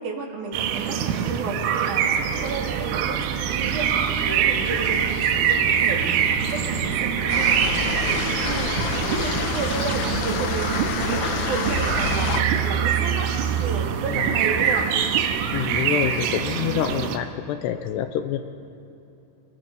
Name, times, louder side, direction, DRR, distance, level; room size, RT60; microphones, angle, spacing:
voice 1, 0.0-13.3 13.6-14.9, right 3 dB, 50° right, 1 dB, 2.9 m, -32 dB
sound 1, 0.5-17.2, right 8 dB, 90° right, 3.6 m, -24 dB
sound 2, 2.2-9.3, right 6 dB, 70° right, 4.5 m, -36 dB
sound 3, 7.3-12.4, left 7 dB, 70° left, 2.8 m, -28 dB
voice 2, 15.5-18.4, left 10 dB, 85° left, 9 dB, 2.5 m, -27 dB
30.0 x 18.0 x 5.3 m, 2.8 s
omnidirectional pair, 5.6 m